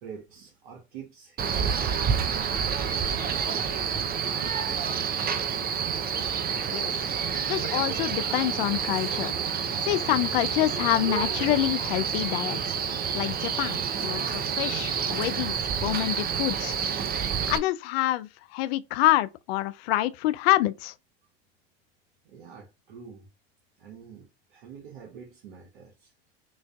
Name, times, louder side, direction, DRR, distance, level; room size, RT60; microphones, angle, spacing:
voice 1, 0.0-2.3 2.8-3.9 4.2-5.5 22.2-23.3 23.8-26.3, right 7 dB, 75° right, 1.1 m, -46 dB
Male speech man speaking, 1.4-17.6, right 7 dB, 30° right, 0.6 m, -28 dB
voice 2, 7.4-9.3 9.8-16.8 17.5-20.9, left 15 dB, 75° left, 0.5 m, -27 dB
6.1 x 2.5 x 2.3 m
hypercardioid pair, 85°, 31 cm